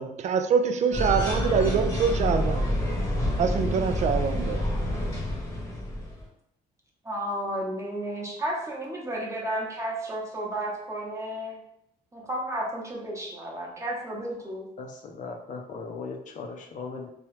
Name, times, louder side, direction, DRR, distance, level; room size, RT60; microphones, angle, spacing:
voice 1, 0.0-2.7 3.4-4.7, right 6 dB, 45° right, 8 dB, 0.4 m, -25 dB
sound 1, 0.9-6.3, left 1 dB, 15° left, 1.0 m, -28 dB
voice 2, 7.0-11.6 12.1-14.7, right 1 dB, 20° right, -2 dB, 0.9 m, -32 dB
voice 3, 14.8-17.1, left 4 dB, 50° left, 1 dB, 0.6 m, -38 dB
3.0 x 2.3 x 3.2 m, 0.77 s
cardioid pair, 105°, 16 cm